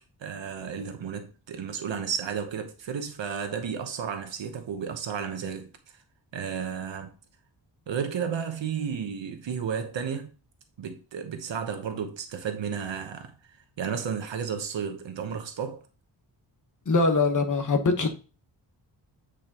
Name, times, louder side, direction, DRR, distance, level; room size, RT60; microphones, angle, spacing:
voice 1, 0.2-5.7 6.3-7.1 7.9-10.3 10.8-13.3 13.8-15.8, right 7 dB, 80° right, 1.0 m, -33 dB
voice 2, 16.8-18.1, left 3 dB, 45° left, 1.2 m, -22 dB
8.8 x 5.0 x 2.9 m
wide cardioid pair, 145°, 44 cm